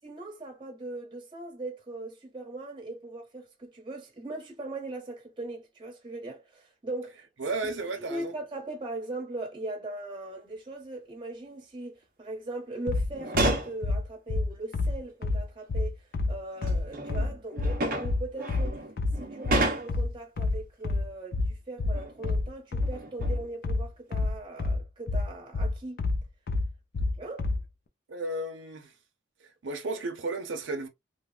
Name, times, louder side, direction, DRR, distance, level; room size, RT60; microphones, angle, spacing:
voice 1, 0.0-7.2 7.6-16.0 16.3-18.8 19.2-26.0 27.2-27.5, right 2 dB, 25° right, 1.0 m, -39 dB
voice 2, 7.4-8.3 28.1-28.9 29.6-30.9, right 2 dB, 85° right, 0.7 m, -33 dB
sound 1, 12.9-27.7, left 3 dB, 55° left, 0.4 m, -28 dB
sound 2, 13.1-13.8 15.0-15.1 16.3-20.1 21.9-22.4 22.8-23.5 24.1-24.3, right 2 dB, 50° right, 0.7 m, -32 dB
3.2 x 2.1 x 2.4 m
head